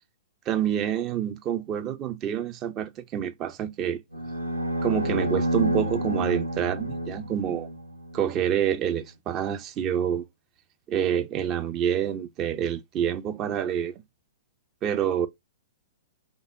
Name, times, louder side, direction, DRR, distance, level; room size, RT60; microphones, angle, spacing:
voice 1, 0.5-4.0 4.8-7.7 8.1-10.2 10.9-13.9 14.8-15.3, right 9 dB, 30° right, 0.4 m, -27 dB
sound 1, 4.1-8.4, right 1 dB, 85° right, 0.8 m, -29 dB
3.5 x 2.6 x 2.4 m
figure-of-eight pair, 110°, 0 cm